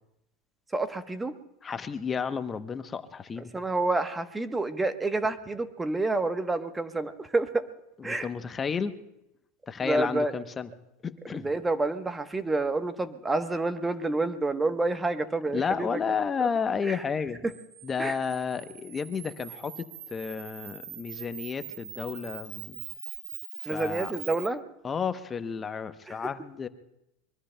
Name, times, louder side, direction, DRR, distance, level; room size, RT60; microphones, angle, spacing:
voice 1, 0.7-1.3 3.4-7.6 8.0-8.3 9.8-10.3 11.3-16.0 16.4-16.5 16.8-17.0 18.0-18.2 23.6-24.6 26.1-26.3, right 2 dB, 15° right, 9 dB, 1.0 m, -29 dB
voice 2, 1.6-3.5 8.0-8.9 9.7-10.7 11.0-11.5 15.5-17.4 17.8-22.8 23.7-24.1 24.8-26.7, left 6 dB, 25° left, 11 dB, 0.8 m, -32 dB
Camera, 17.5-24.5, right 9 dB, 65° right, 2.8 m, -43 dB
24.0 x 22.5 x 2.2 m, 0.86 s
hypercardioid pair, 95°, 0 cm